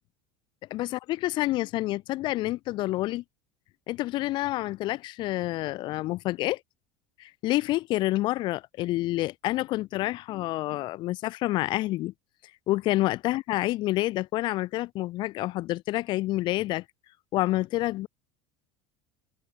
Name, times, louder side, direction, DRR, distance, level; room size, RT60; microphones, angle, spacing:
voice 1, 0.7-3.2 3.9-6.6 7.2-12.1 12.7-16.8 17.3-18.1, left 17 dB, 40° left, 1.6 m, -28 dB
cardioid pair, 180°, 12 cm